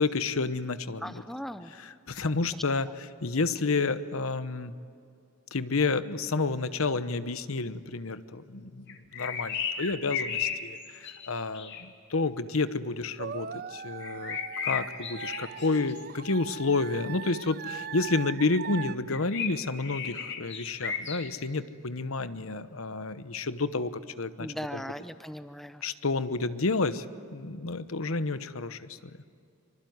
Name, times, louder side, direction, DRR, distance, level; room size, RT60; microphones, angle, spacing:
voice 1, 0.0-1.2 1.8-2.9 3.2-4.7 5.5-23.9 24.2-24.8 25.8-27.0 27.3-29.0, left 3 dB, 75° left, 12 dB, 1.0 m, -30 dB
voice 2, 1.0-1.8 2.5-2.6 24.4-25.8, equal, ahead, 10 dB, 0.8 m, -38 dB
sound 1, 8.9-11.8 14.0-16.0 19.1-21.2, left 7 dB, 55° left, 2.4 m, -34 dB
sound 2, 13.2-19.0, right 7 dB, 45° right, 0.6 m, -40 dB
24.5 x 24.5 x 9.5 m, 2.4 s
head